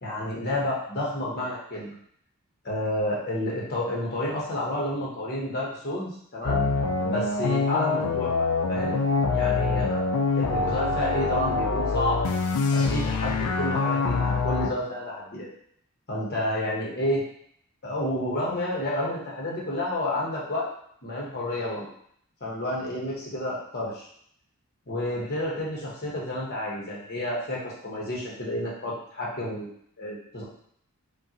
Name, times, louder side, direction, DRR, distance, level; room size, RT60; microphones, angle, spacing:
voice 1, 0.0-1.9 2.6-6.6 7.0-9.0 9.3-10.0 10.4-12.2 12.7-15.5 16.1-17.2 17.8-20.7 21.0-21.9 22.4-24.1 24.9-29.7 30.0-30.4, left 1 dB, 45° left, -4 dB, 1.2 m, -30 dB
sound 1, 6.5-14.7, left 4 dB, 90° left, 0.4 m, -25 dB
5.3 x 2.3 x 2.9 m, 0.67 s
head